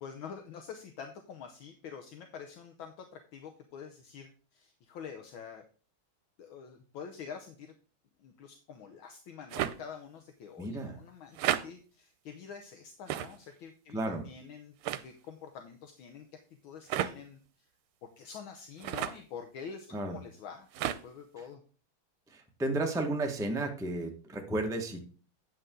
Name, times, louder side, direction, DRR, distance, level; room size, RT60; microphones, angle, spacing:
voice 1, 0.0-5.6 6.4-7.7 8.2-14.8 15.0-16.3 16.6-17.4 18.2-21.6, left 6 dB, 70° left, 5 dB, 1.6 m, -46 dB
sound 1, 9.5-9.8 11.4-11.6 13.1-13.4 14.8-15.0 16.9-17.1 18.8-19.2 20.7-21.0, right 12 dB, 90° right, 1.5 m, -31 dB
voice 2, 10.6-10.9 13.9-14.2 19.9-20.2 22.3-25.1, right 2 dB, ahead, 3 dB, 0.9 m, -33 dB
9.5 x 7.5 x 3.8 m, 0.40 s
omnidirectional pair, 2.4 m